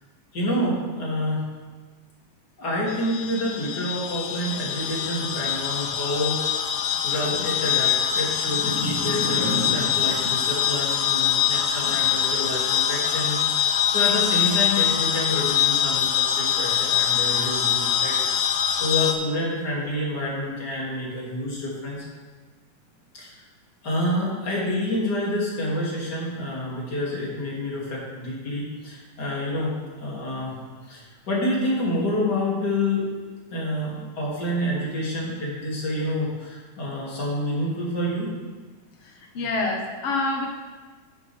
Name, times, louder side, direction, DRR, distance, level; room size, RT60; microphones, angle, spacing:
voice 1, 0.3-1.4 2.6-6.8 7.0-22.0 23.1-23.3 23.8-30.6 30.9-33.1 33.5-38.3, left 1 dB, 35° left, -5 dB, 3.1 m, -28 dB
sound 1, 2.9-19.1, left 9 dB, 75° left, 2.0 m, -24 dB
voice 2, 39.3-40.5, left 2 dB, 55° left, 0 dB, 2.1 m, -26 dB
11.0 x 10.5 x 3.5 m, 1.4 s
omnidirectional pair, 3.5 m